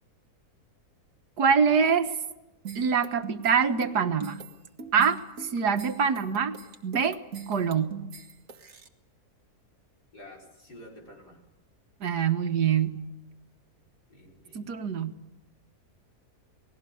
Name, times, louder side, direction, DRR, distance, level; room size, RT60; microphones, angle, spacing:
voice 1, 1.4-2.2 2.8-4.4 4.9-6.6 6.8-7.2 7.5-8.0 12.0-13.0 14.5-15.2, right 6 dB, 85° right, 9 dB, 1.9 m, -25 dB
sound 1, 2.6-8.9, right 6 dB, 55° right, 2.1 m, -40 dB
voice 2, 10.1-11.4 14.1-14.7, left 1 dB, 80° left, 0 dB, 6.1 m, -49 dB
28.5 x 19.5 x 7.0 m, 1.0 s
omnidirectional pair, 1.7 m